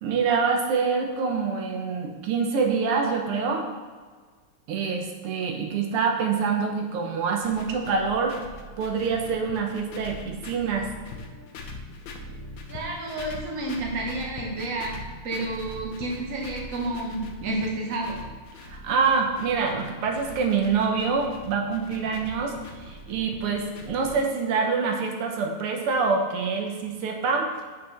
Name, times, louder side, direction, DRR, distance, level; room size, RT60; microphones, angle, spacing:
voice 1, 0.0-3.7 4.7-8.4 8.8-10.9 18.7-27.5, right 5 dB, 90° right, 2 dB, 2.0 m, -26 dB
sound 1, 7.4-24.1, left 2 dB, 65° left, 1.5 m, -42 dB
voice 2, 12.7-18.2, right 2 dB, 40° right, -2 dB, 1.8 m, -30 dB
6.7 x 6.1 x 5.8 m, 1.5 s
omnidirectional pair, 2.4 m